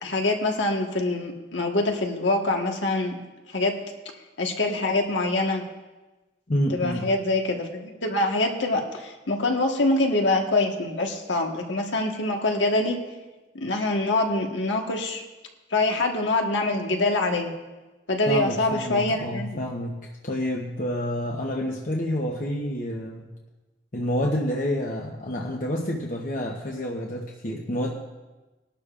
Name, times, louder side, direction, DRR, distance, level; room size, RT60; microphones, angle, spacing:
voice 1, 0.0-3.2 3.5-3.8 4.4-5.6 6.7-13.0 13.5-15.2 15.7-17.5 18.1-19.6, left 2 dB, 90° left, 2 dB, 1.5 m, -25 dB
voice 2, 6.5-7.1 18.3-23.3 23.9-28.0, equal, 45° left, 0 dB, 0.9 m, -28 dB
19.5 x 12.0 x 2.5 m, 1.2 s
head